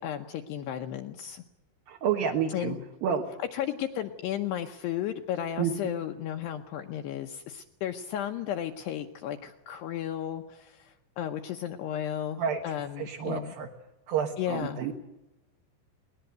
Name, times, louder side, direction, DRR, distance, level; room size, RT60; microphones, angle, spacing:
voice 1, 0.0-1.4 2.5-2.8 3.5-13.5 14.4-14.8, left 10 dB, 75° left, 5 dB, 2.6 m, -34 dB
voice 2, 1.9-2.7 3.0-3.2 5.6-5.9 12.4-12.6 13.0-13.7 14.1-14.9, right 7 dB, 65° right, 2 dB, 2.5 m, -29 dB
21.5 x 18.5 x 8.0 m, 1.0 s
omnidirectional pair, 5.6 m